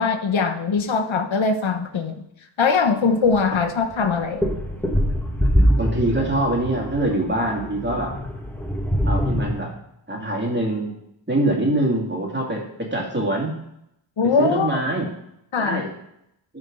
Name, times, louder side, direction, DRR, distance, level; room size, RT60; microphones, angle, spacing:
voice 1, 0.0-2.2 2.6-4.5 14.2-14.8 15.5-15.9, left 4 dB, 65° left, 6 dB, 1.1 m, -21 dB
sound 1, 3.2-3.4 3.9-9.5, equal, 5° left, 1.4 m, -23 dB
voice 2, 5.8-8.1 9.0-9.7 10.1-10.9 11.3-13.5 14.4-15.1 15.6-15.9, right 1 dB, 20° right, -2 dB, 2.6 m, -24 dB
11.5 x 4.5 x 5.4 m, 0.78 s
wide cardioid pair, 90°, 49 cm